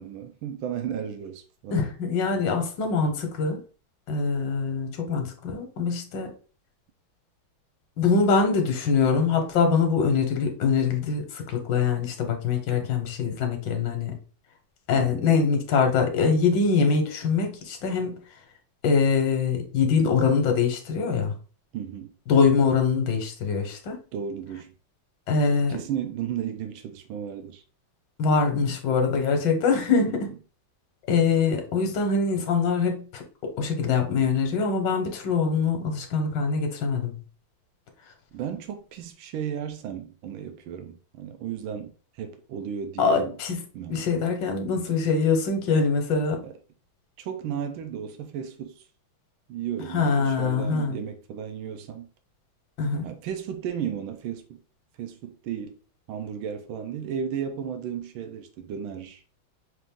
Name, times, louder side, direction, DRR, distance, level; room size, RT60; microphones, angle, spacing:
voice 1, 0.0-1.8 14.9-15.3 21.7-22.1 24.1-24.7 25.7-27.6 30.1-30.2 38.3-43.4 43.7-44.1 46.4-46.6 47.2-48.8 49.5-52.1 53.0-54.4 55.0-55.8 56.1-59.2, right 8 dB, 85° right, 1.5 m, -34 dB
voice 2, 1.7-3.6 4.1-6.3 8.0-14.2 14.9-18.2 18.8-21.3 22.3-24.0 25.3-25.8 28.2-30.3 31.1-37.1 43.0-43.6 43.9-46.4 49.9-50.9 52.8-53.1, left 5 dB, 65° left, 1.6 m, -23 dB
5.8 x 2.5 x 3.5 m
omnidirectional pair, 2.2 m